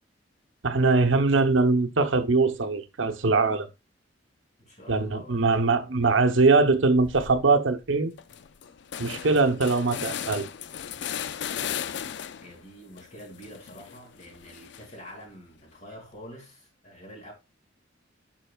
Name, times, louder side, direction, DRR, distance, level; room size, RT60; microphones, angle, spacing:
voice 1, 0.6-3.7 4.9-8.1 9.0-10.5, right 3 dB, 90° right, 0.9 m, -22 dB
voice 2, 4.6-6.1 12.4-17.3, equal, 35° left, 2.8 m, -46 dB
sound 1, 7.0-7.4 7.8-7.9 8.2-12.6 13.0-15.1, left 9 dB, 65° left, 0.4 m, -36 dB
8.9 x 6.1 x 2.3 m
head